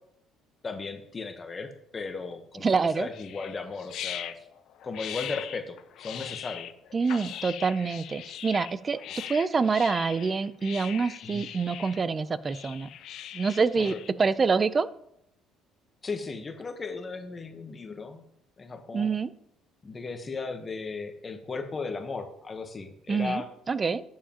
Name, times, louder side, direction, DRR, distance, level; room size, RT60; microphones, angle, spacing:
voice 1, 0.6-4.4 4.8-6.7 9.0-9.2 11.2-11.4 13.8-14.0 16.0-18.2 18.6-19.1 19.8-23.5, left 4 dB, 30° left, 6 dB, 1.1 m, -36 dB
voice 2, 2.6-3.1 6.9-9.0 9.3-12.9 13.3-14.9 18.9-19.3 23.1-24.0, right 4 dB, 30° right, 16 dB, 0.5 m, -26 dB
sound 1, 3.1-14.1, left 11 dB, 65° left, 0.6 m, -40 dB
12.0 x 7.4 x 2.9 m, 0.76 s
cardioid pair, 105°, 0 cm